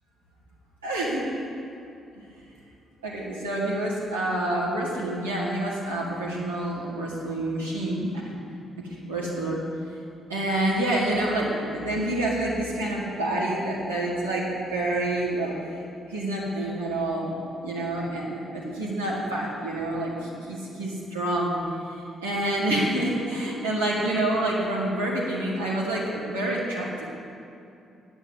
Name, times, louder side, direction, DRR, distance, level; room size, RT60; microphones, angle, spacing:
voice 1, 0.8-1.2 2.1-2.3 3.0-8.2 8.8-9.6 10.3-15.6 16.1-21.6 22.2-26.9, right 1 dB, 85° right, -7 dB, 2.4 m, -28 dB
9.9 x 8.0 x 8.9 m, 2.6 s
figure-of-eight pair, 40°, 0 cm